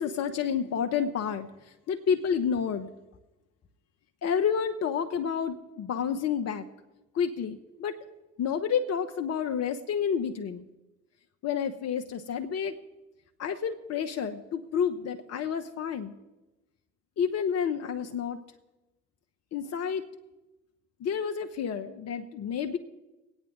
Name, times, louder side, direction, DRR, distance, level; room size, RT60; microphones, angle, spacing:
voice 1, 0.0-1.5 1.9-2.9 4.2-6.7 7.1-8.0 8.4-10.6 11.4-12.7 13.4-16.1 17.2-18.4 19.5-20.0 21.0-22.8, left 7 dB, 45° left, 6 dB, 0.8 m, -29 dB
21.0 x 8.8 x 3.5 m, 1.0 s
figure-of-eight pair, 40°, 36 cm